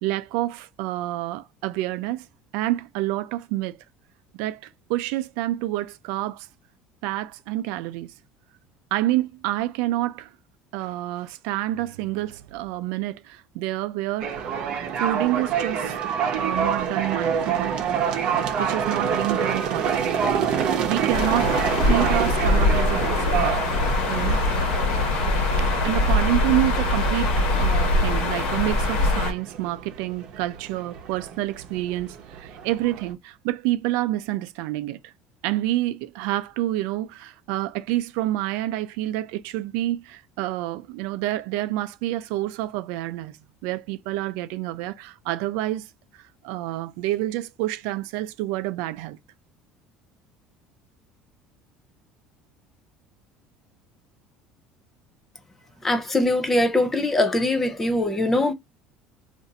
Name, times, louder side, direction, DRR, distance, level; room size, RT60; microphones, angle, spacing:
voice 1, 0.0-2.3 2.5-3.8 4.4-6.5 7.0-8.1 8.9-10.3 10.7-14.5 15.0-16.0 16.4-17.7 18.4-20.2 20.9-23.6 24.1-24.4 25.6-35.1 35.4-43.3 43.6-45.9 46.4-49.2, right 15 dB, 80° right, 0.4 m, -28 dB
sound 1, 14.2-33.1, right 7 dB, 45° right, 0.8 m, -27 dB
sound 2, 21.1-29.3, left 2 dB, 85° left, 1.1 m, -22 dB
voice 2, 55.8-58.5, left 1 dB, 10° left, 0.4 m, -22 dB
2.5 x 2.5 x 4.0 m
cardioid pair, 170°, 2 cm